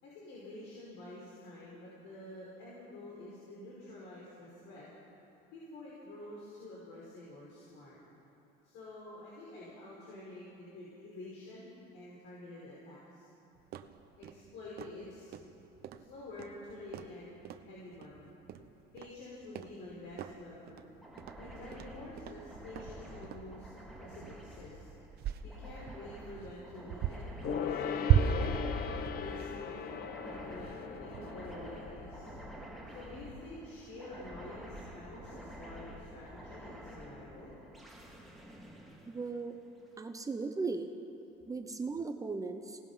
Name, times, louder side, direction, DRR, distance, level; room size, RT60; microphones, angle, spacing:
voice 1, 0.0-4.9 5.5-8.0 8.6-13.3 14.2-15.4 15.9-18.3 18.9-20.8 21.4-23.7 24.0-24.9 25.4-28.7 29.2-29.8 30.2-32.3 32.9-37.5, left 2 dB, 75° left, -6 dB, 5.1 m, -48 dB
sound 1, 13.6-31.9, right 9 dB, 50° right, 0.9 m, -38 dB
sound 2, 21.0-39.9, equal, ahead, 2.2 m, -49 dB
Gong, 27.4-33.3 33.6-33.7, left 7 dB, 50° left, 1.1 m, -39 dB
voice 2, 39.1-39.6 40.0-40.9 41.5-42.8, right 4 dB, 15° right, 6 dB, 0.8 m, -37 dB
25.0 x 18.5 x 5.6 m, 2.8 s
cardioid pair, 150°, 20 cm